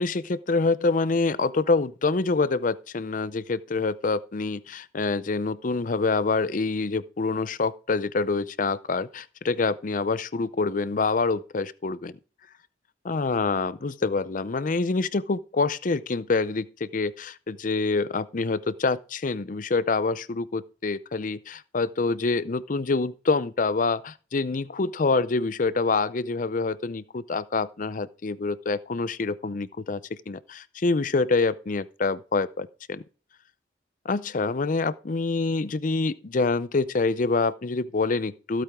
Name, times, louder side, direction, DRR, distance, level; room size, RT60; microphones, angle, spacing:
voice 1, 0.0-12.1 13.0-30.0 30.3-33.0 34.0-38.6, left 3 dB, 45° left, 0.5 m, -26 dB
15.5 x 8.5 x 3.6 m
head